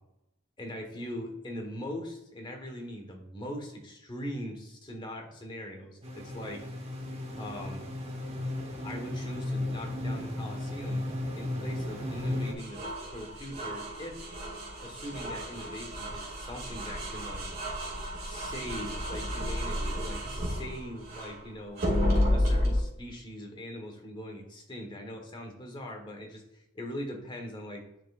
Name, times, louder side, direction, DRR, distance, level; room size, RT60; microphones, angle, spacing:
voice 1, 0.6-6.7 7.3-7.8 8.8-11.0 11.3-12.8 13.1-14.2 14.8-17.5 18.2-21.8 22.3-27.8, equal, 25° left, 2 dB, 1.3 m, -41 dB
sound 1, 6.0-12.5, left 1 dB, 30° right, 1.2 m, -35 dB
sound 2, 12.6-21.4 21.8-22.8, equal, 50° right, 2.2 m, -31 dB
10.0 x 4.5 x 2.4 m, 0.82 s
head